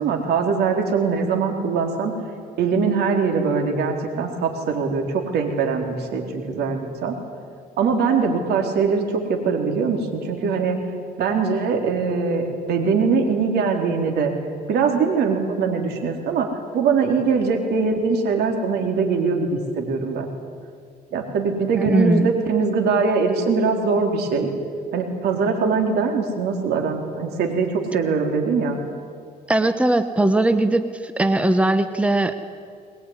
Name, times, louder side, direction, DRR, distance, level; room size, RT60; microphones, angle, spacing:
voice 1, 0.0-2.1 2.6-7.2 7.8-10.8 11.2-14.3 14.7-16.5 16.7-20.3 21.1-24.5 24.9-28.8, right 5 dB, 75° right, 3 dB, 4.0 m, -22 dB
voice 2, 21.8-22.3 29.5-32.4, right 2 dB, 5° right, 9 dB, 1.1 m, -20 dB
22.0 x 20.5 x 9.8 m, 2.2 s
cardioid pair, 110°, 17 cm